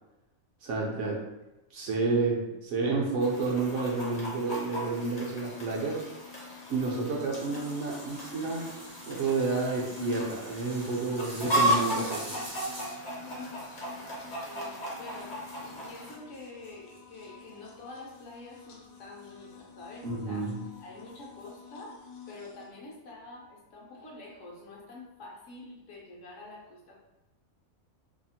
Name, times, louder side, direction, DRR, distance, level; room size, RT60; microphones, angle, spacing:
voice 1, 0.6-1.2 1.7-6.0 6.7-8.7 9.0-12.4 20.0-20.6, right 3 dB, 65° right, -2 dB, 0.9 m, -30 dB
Chicken rooster, 3.2-16.1, equal, 45° left, 0.7 m, -35 dB
sound 1, 5.3-22.7, left 6 dB, 90° left, 1.0 m, -49 dB
sound 2, 7.4-17.2 18.1-18.2 18.6-18.8 19.2-19.3 20.2-20.3 21.2-21.5, right 1 dB, 25° right, 0.4 m, -46 dB
voice 2, 13.2-13.6 13.8-14.2 14.4-20.5 20.8-22.0 22.2-27.0, left 2 dB, 65° left, -3 dB, 1.0 m, -47 dB
2.7 x 2.4 x 2.7 m, 1.0 s
omnidirectional pair, 1.5 m